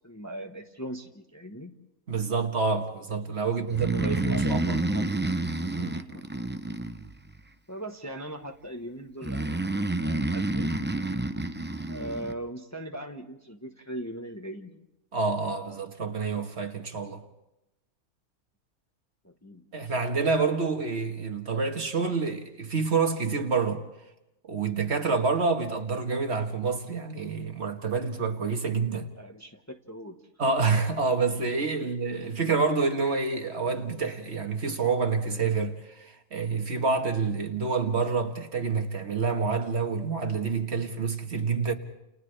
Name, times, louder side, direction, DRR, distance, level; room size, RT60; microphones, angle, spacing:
voice 1, 0.0-1.7 3.5-5.2 6.1-6.3 7.7-10.8 11.9-14.8 19.2-19.6 29.2-30.2 31.8-32.0, right 1 dB, 15° left, 1.1 m, -40 dB
voice 2, 2.1-4.8 5.8-6.0 15.1-17.2 19.7-23.8 24.5-29.1 30.4-41.7, right 4 dB, 50° right, 1.6 m, -28 dB
Breathing, 3.7-7.4 9.2-12.3, right 2 dB, 15° right, 0.4 m, -29 dB
30.0 x 29.5 x 3.3 m
omnidirectional pair, 1.4 m